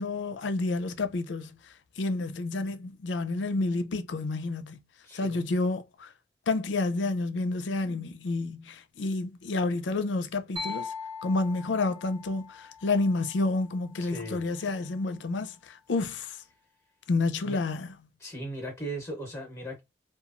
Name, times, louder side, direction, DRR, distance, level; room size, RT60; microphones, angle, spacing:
voice 1, 0.0-1.5 2.0-4.8 5.1-6.1 6.5-10.9 11.2-16.4 17.1-17.9, left 3 dB, 90° left, 0.5 m, -29 dB
voice 2, 5.0-5.4 14.0-14.4 17.4-17.6 18.2-19.8, right 1 dB, 15° left, 0.9 m, -38 dB
sound 1, 10.6-14.2, left 4 dB, 30° right, 0.7 m, -41 dB
3.0 x 2.3 x 2.4 m
head